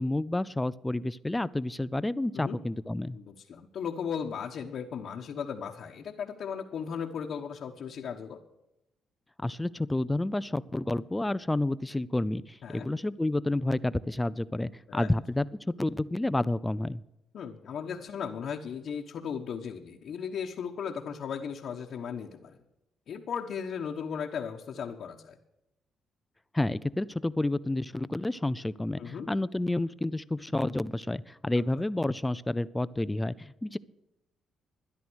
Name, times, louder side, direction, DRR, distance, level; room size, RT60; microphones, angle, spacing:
voice 1, 0.0-3.2 9.4-17.0 26.5-33.8, left 2 dB, 10° left, 18 dB, 0.5 m, -30 dB
voice 2, 3.1-8.4 12.6-12.9 14.9-15.1 17.3-22.6 23.1-25.4 29.0-29.3, left 7 dB, 65° left, 0 dB, 1.2 m, -36 dB
13.0 x 10.5 x 6.3 m, 0.91 s
cardioid pair, 90°, 0 cm